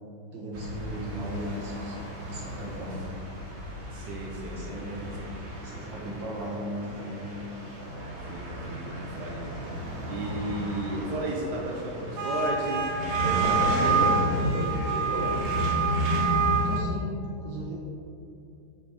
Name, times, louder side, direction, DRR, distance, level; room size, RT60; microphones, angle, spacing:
voice 1, 0.3-1.9 2.3-3.1 4.5-5.2 5.6-7.4 16.6-17.8, equal, 90° right, -5 dB, 2.5 m, -37 dB
sound 1, 0.5-16.8, right 2 dB, 45° right, 1.2 m, -30 dB
voice 2, 3.9-4.6 8.2-12.9 13.2-15.5, right 2 dB, 70° right, -2 dB, 1.4 m, -34 dB
9.3 x 5.1 x 3.7 m, 2.6 s
omnidirectional pair, 1.9 m